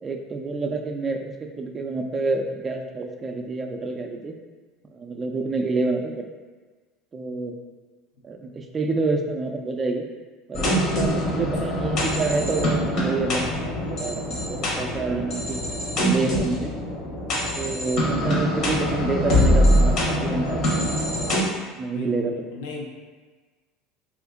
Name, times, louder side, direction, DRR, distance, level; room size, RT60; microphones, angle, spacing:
voice 1, 0.0-4.3 4.9-6.3 7.1-7.6 8.2-10.1 10.5-15.6 16.0-16.7 17.5-20.6 21.7-22.5, right 3 dB, 25° right, 4 dB, 0.4 m, -28 dB
sound 1, 10.5-21.4, equal, 55° left, 0.9 m, -23 dB
voice 2, 18.1-18.6 21.9-22.9, left 2 dB, 75° left, 0 dB, 0.5 m, -36 dB
2.7 x 2.5 x 3.5 m, 1.4 s
supercardioid pair, 100°, 0 cm